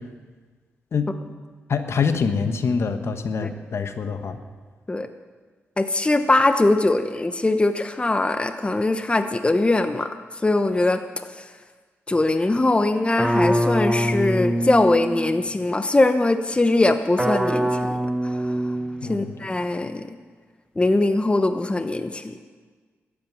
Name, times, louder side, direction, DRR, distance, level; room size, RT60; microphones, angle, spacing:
voice 1, 1.7-4.4 19.0-19.4, left 5 dB, 60° left, 8 dB, 1.2 m, -25 dB
voice 2, 5.8-10.1 10.4-11.0 12.1-17.7 18.2-18.4 19.1-20.0 20.8-22.4, left 2 dB, 20° left, 9 dB, 0.9 m, -21 dB
sound 1, 13.2-15.6 17.2-19.5, right 1 dB, 10° right, 1.1 m, -24 dB
13.0 x 8.8 x 9.7 m, 1.5 s
cardioid pair, 60°, 5 cm